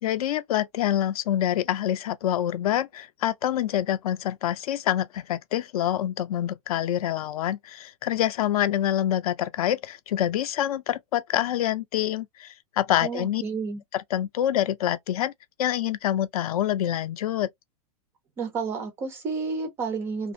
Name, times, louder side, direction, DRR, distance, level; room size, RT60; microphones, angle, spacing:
voice 1, 0.0-13.4 13.9-15.3 15.6-17.5, left 11 dB, 65° left, 0.5 m, -26 dB
voice 2, 13.0-13.8 18.4-20.3, right 4 dB, 15° right, 0.3 m, -31 dB
2.5 x 2.5 x 2.6 m
supercardioid pair, 170°, 20 cm